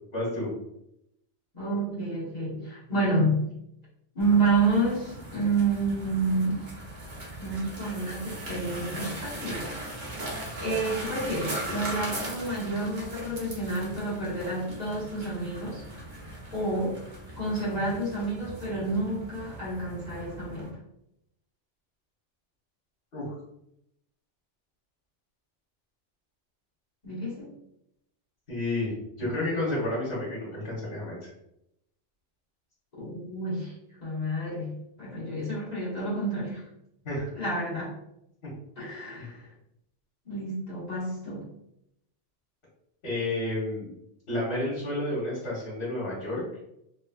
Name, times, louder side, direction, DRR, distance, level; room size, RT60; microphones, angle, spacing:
voice 1, 0.1-0.5 23.1-23.3 28.5-28.9 29.2-31.3 37.0-37.3 37.7-37.8 38.4-38.5 39.2-39.3 43.0-43.9 44.3-46.4, left 1 dB, 55° left, -8 dB, 1.5 m, -31 dB
voice 2, 1.5-3.4 4.1-6.6 7.4-9.7 10.1-15.8 16.5-17.0 17.4-20.7 27.0-27.5 32.9-33.7 34.0-36.6 37.3-38.0 38.8-39.5 40.2-41.5, right 2 dB, 35° left, -8 dB, 1.3 m, -29 dB
sound 1, 4.2-20.7, right 1 dB, 45° right, 0.9 m, -39 dB
3.2 x 3.0 x 2.3 m, 0.80 s
omnidirectional pair, 1.2 m